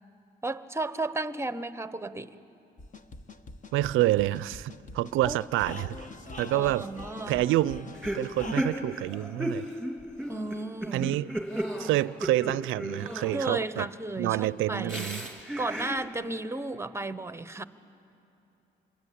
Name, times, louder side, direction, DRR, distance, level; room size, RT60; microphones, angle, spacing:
voice 1, 0.4-2.4 5.2-5.4 6.5-7.4 10.3-11.1 13.3-15.1 15.6-17.6, right 2 dB, 15° right, 0.9 m, -34 dB
sound 1, 2.8-8.6, left 3 dB, 40° left, 1.3 m, -43 dB
voice 2, 3.7-6.1 6.4-6.9 7.3-9.6 10.9-11.3 11.8-13.9 14.2-15.3, right 15 dB, 90° right, 0.5 m, -28 dB
sound 2, 7.9-13.8 14.9-16.1, right 1 dB, ahead, 3.0 m, -34 dB
27.0 x 22.0 x 8.5 m
cardioid pair, 90°, 20 cm